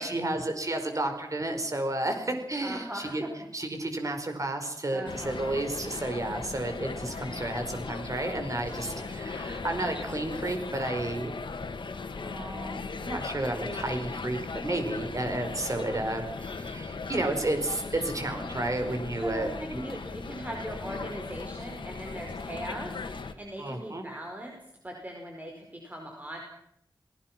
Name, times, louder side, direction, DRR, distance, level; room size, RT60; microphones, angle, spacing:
voice 1, 0.0-3.2 3.5-11.3 12.0-19.8 23.6-24.1, right 2 dB, 40° right, 5 dB, 4.9 m, -32 dB
voice 2, 2.6-3.3 4.9-5.4 6.9-7.4 8.8-9.2 19.2-24.6 24.8-26.4, right 1 dB, 20° right, 1 dB, 4.9 m, -40 dB
sound 1, 5.1-23.3, left 4 dB, 85° left, 2.0 m, -38 dB
29.0 x 19.0 x 6.1 m, 0.75 s
wide cardioid pair, 80°, 8 cm